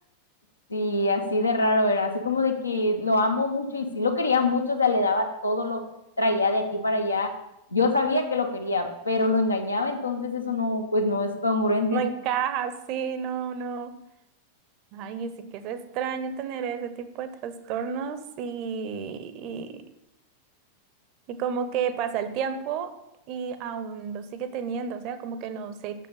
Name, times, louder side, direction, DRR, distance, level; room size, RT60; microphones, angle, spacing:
voice 1, 0.7-5.8 6.2-7.3 7.7-12.0, left 2 dB, 80° left, 5 dB, 0.9 m, -24 dB
voice 2, 11.9-13.9 14.9-19.8 21.3-22.9 23.3-26.1, right 7 dB, 40° right, 11 dB, 0.6 m, -31 dB
6.6 x 5.5 x 5.5 m, 0.88 s
figure-of-eight pair, 90°, 0 cm